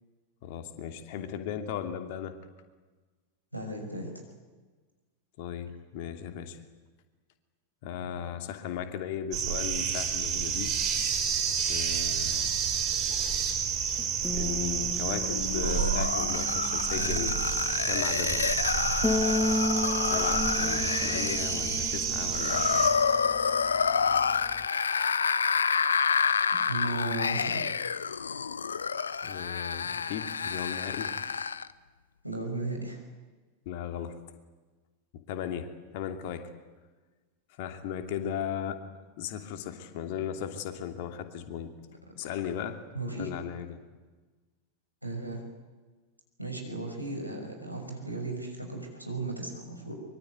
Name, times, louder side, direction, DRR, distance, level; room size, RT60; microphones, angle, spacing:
voice 1, 0.4-2.4 5.4-6.6 7.8-10.8 11.7-12.5 14.3-17.4 17.9-18.5 20.0-22.9 29.2-31.1 33.6-34.2 35.3-36.5 37.6-38.8 39.2-41.7 42.2-42.8 43.1-43.8, left 9 dB, 50° left, 7 dB, 2.8 m, -36 dB
voice 2, 3.5-4.1 8.2-8.3 26.7-27.6 32.2-33.0 42.9-43.3 45.0-45.4 46.4-49.9, right 2 dB, 90° right, 3 dB, 6.1 m, -35 dB
sound 1, 9.3-22.9, right 7 dB, 35° right, 5.5 m, -30 dB
sound 2, 12.1-24.7, left 2 dB, 10° left, 1.3 m, -35 dB
sound 3, 15.1-31.7, left 6 dB, 70° left, 0.8 m, -29 dB
24.0 x 23.5 x 9.5 m, 1.3 s
figure-of-eight pair, 90°, 0 cm